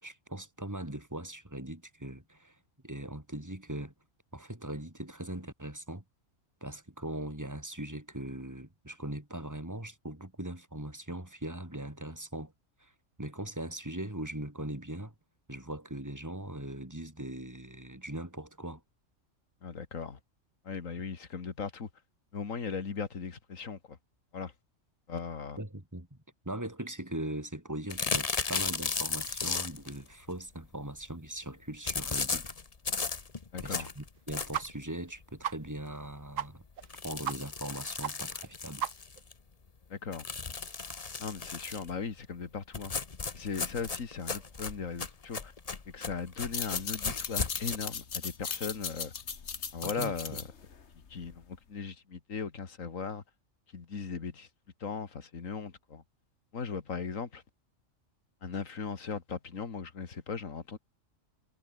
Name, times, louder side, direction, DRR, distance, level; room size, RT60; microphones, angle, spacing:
voice 1, 0.0-2.6 2.8-3.9 4.3-6.0 6.6-12.5 12.8-12.9 13.2-15.1 15.5-18.8 25.6-26.2 26.5-32.5 33.6-36.6 37.0-38.9 49.8-50.4, right 1 dB, 15° right, 3.9 m, -40 dB
voice 2, 19.6-20.2 20.6-21.9 22.3-24.0 24.3-24.5 25.1-25.6 33.5-33.9 39.9-40.3 41.2-42.9 43.3-45.5 45.9-49.1 49.7-50.4 50.9-53.2 53.7-54.5 54.8-56.0 56.5-57.4 58.4-60.8, left 5 dB, 90° left, 2.3 m, -38 dB
sound 1, 27.9-30.0 31.9-34.8 35.2-35.3 35.7-35.8 36.0-36.1 36.8-39.3 40.1-41.9 42.7-47.8, left 4 dB, 30° left, 1.1 m, -35 dB
sound 2, 34.5-34.7 35.0-35.1 35.4-35.6 35.9-36.0 36.4-36.5 36.8-36.9 37.2-37.4 37.6-37.7 38.0-38.1 38.4-38.5 38.8-39.2, right 9 dB, 80° right, 1.4 m, -34 dB
sound 3, 46.5-51.6, left 6 dB, 60° left, 1.7 m, -37 dB
omnidirectional pair, 1.3 m